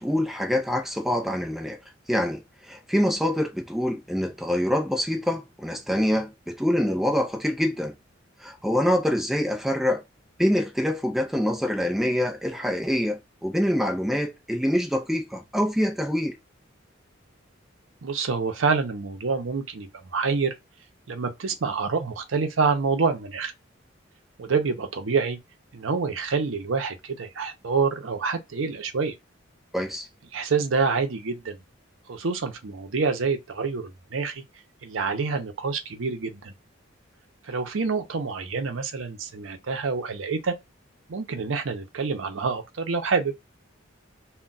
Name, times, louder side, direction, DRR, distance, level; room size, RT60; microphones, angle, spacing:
voice 1, 0.0-1.8 2.1-7.9 8.4-10.0 10.4-16.4 29.7-30.1, equal, ahead, 0.4 m, -25 dB
voice 2, 18.0-20.5 21.1-23.5 24.4-25.4 25.7-29.1 30.3-31.6 32.1-34.4 34.8-36.5 37.5-40.5 41.1-43.3, right 4 dB, 80° right, 0.6 m, -27 dB
2.2 x 2.2 x 3.8 m
head